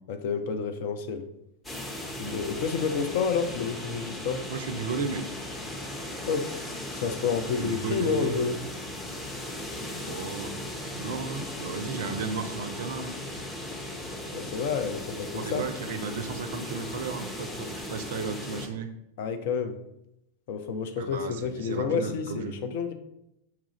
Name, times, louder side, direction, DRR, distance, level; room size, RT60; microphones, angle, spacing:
voice 1, 0.1-1.3 2.2-4.4 6.3-6.5 6.9-8.6 14.3-15.7 19.2-19.8 20.5-22.9, left 6 dB, 50° left, 7 dB, 0.4 m, -29 dB
sound 1, 1.6-18.7, left 1 dB, 10° left, 0.7 m, -37 dB
voice 2, 4.5-5.3 7.6-8.4 10.0-10.6 11.0-13.2 15.1-19.0 21.0-22.6, right 5 dB, 55° right, 8 dB, 0.4 m, -34 dB
5.7 x 2.4 x 3.0 m, 0.83 s
figure-of-eight pair, 90°, 0 cm